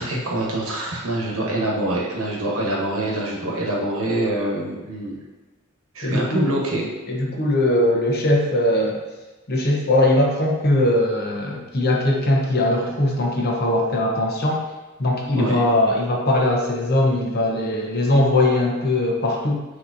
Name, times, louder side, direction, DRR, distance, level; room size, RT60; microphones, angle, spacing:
voice 1, 0.0-5.2 5.9-6.9 15.3-15.6, right 1 dB, 75° right, -2 dB, 1.0 m, -25 dB
voice 2, 6.0-6.5 7.1-9.0 9.5-14.7 15.0-19.6, left 1 dB, 50° left, -1 dB, 0.8 m, -20 dB
6.2 x 2.9 x 2.6 m, 1.2 s
head